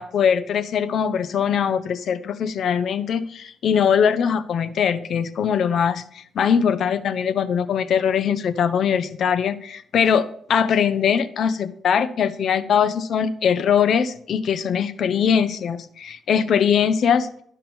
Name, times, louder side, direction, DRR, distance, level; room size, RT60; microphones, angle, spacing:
voice 1, 0.0-17.3, left 7 dB, 55° left, 13 dB, 0.5 m, -21 dB
12.0 x 5.4 x 4.3 m, 0.63 s
wide cardioid pair, 170°, 0 cm